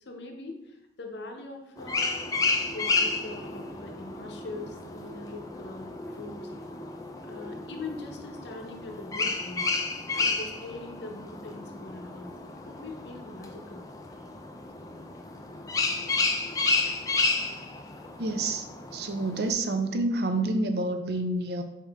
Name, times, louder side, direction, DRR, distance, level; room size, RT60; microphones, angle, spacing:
voice 1, 0.0-2.3 2.7-6.4 7.2-9.7 10.1-13.8 15.5-15.6 16.4-16.5, left 2 dB, 80° left, 3 dB, 0.7 m, -42 dB
sound 1, 1.8-19.5, left 3 dB, 20° left, 0.4 m, -32 dB
voice 2, 18.2-18.7 18.9-21.6, right 2 dB, 60° right, 6 dB, 0.5 m, -28 dB
4.1 x 3.7 x 3.5 m, 0.89 s
head